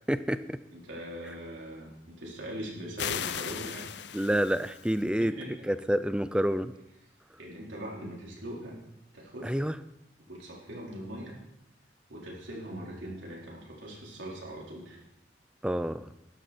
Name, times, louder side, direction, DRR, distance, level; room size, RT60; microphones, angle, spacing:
voice 1, 0.1-0.6 4.1-6.7 9.4-9.8 15.6-16.1, equal, 5° right, 13 dB, 0.4 m, -28 dB
voice 2, 0.7-3.9 5.0-5.5 7.4-8.8 9.1-9.5 10.3-11.4 12.1-15.0, right 1 dB, 85° right, -3 dB, 4.3 m, -41 dB
sound 1, 3.0-5.0, left 9 dB, 70° left, 0.6 m, -37 dB
12.5 x 11.5 x 4.4 m, 0.89 s
head